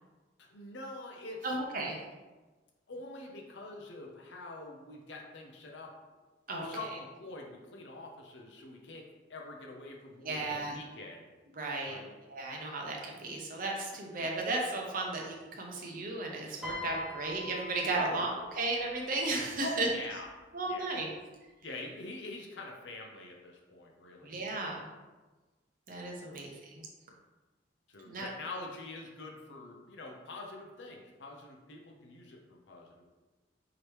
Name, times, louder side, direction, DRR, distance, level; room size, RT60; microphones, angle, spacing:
voice 1, 0.4-1.9 2.9-6.0 6.5-11.3 11.8-12.2 17.9-18.3 19.6-20.3 20.7-20.9 21.6-24.3 26.2-26.5 27.9-33.0, left 2 dB, 65° left, 0 dB, 0.6 m, -45 dB
voice 2, 1.4-2.0 6.5-6.7 10.2-10.8 11.6-12.0 12.3-18.3 18.6-19.9 20.5-21.1 24.2-24.8 25.9-26.9 28.1-28.3, right 2 dB, 45° right, -1 dB, 0.8 m, -34 dB
Piano, 16.6-19.0 20.0-20.3, left 3 dB, ahead, 0.8 m, -42 dB
4.8 x 3.0 x 3.1 m, 1.2 s
head